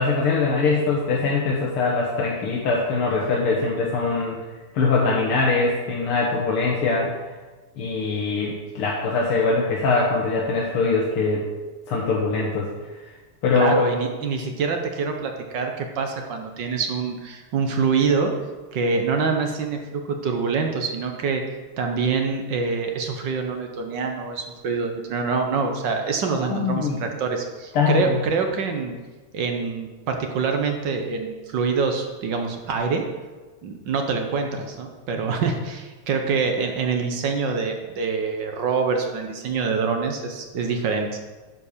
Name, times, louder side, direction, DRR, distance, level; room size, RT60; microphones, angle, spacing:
voice 1, 0.0-4.4 4.7-7.1 7.8-11.5 11.9-12.7 13.4-13.8 26.3-27.0 27.7-28.2, left 4 dB, 90° left, -3 dB, 2.1 m, -22 dB
voice 2, 13.5-18.3 18.7-21.4 21.8-29.0 29.3-33.0 33.6-41.1, right 5 dB, 60° right, 4 dB, 1.6 m, -25 dB
9.8 x 5.1 x 6.7 m, 1.3 s
omnidirectional pair, 2.3 m